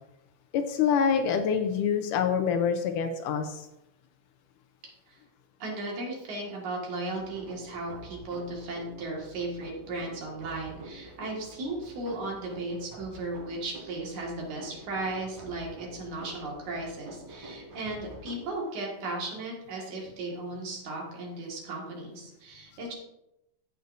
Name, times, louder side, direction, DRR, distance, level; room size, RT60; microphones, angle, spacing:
voice 1, 0.5-3.7, left 7 dB, 80° left, 6 dB, 2.1 m, -26 dB
voice 2, 5.6-22.9, right 2 dB, 60° right, -2 dB, 3.2 m, -36 dB
sound 1, 7.1-18.4, right 1 dB, 35° right, 3.7 m, -47 dB
14.5 x 6.5 x 2.6 m, 0.86 s
omnidirectional pair, 3.9 m